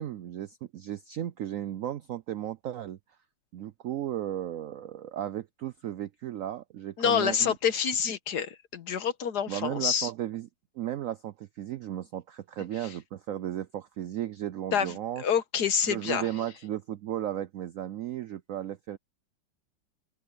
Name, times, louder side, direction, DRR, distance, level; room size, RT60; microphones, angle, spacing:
voice 1, 0.0-3.0 3.5-7.5 9.5-10.5 10.8-15.2 15.9-19.0, right 12 dB, 75° right, 0.7 m, -35 dB
voice 2, 7.0-10.1 12.8-12.9 14.7-16.3, left 7 dB, 65° left, 1.7 m, -27 dB
open air
omnidirectional pair, 2.0 m